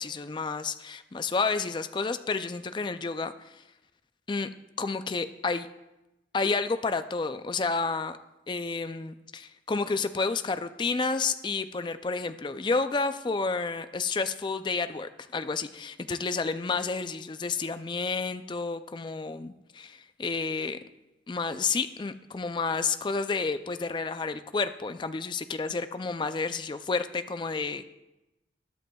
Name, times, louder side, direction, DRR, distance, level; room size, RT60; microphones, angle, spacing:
voice 1, 0.0-3.3 4.3-4.5 4.8-5.7 6.3-8.2 8.5-20.8 21.3-27.8, left 4 dB, 25° left, 11 dB, 0.4 m, -30 dB
20.5 x 7.7 x 2.3 m, 0.99 s
head